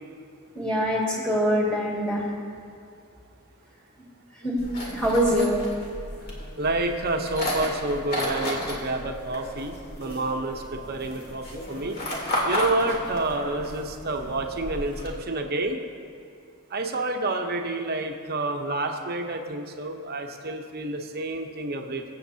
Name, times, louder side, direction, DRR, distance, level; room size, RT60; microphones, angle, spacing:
voice 1, 0.5-2.2 4.4-4.6 4.9-5.6, equal, 5° left, -4 dB, 2.0 m, -24 dB
sound 1, 4.6-15.2, equal, 45° left, 2.1 m, -33 dB
voice 2, 6.6-12.0 12.4-15.8 16.7-22.1, right 2 dB, 45° right, 4 dB, 0.8 m, -29 dB
23.0 x 7.8 x 2.8 m, 2.4 s
head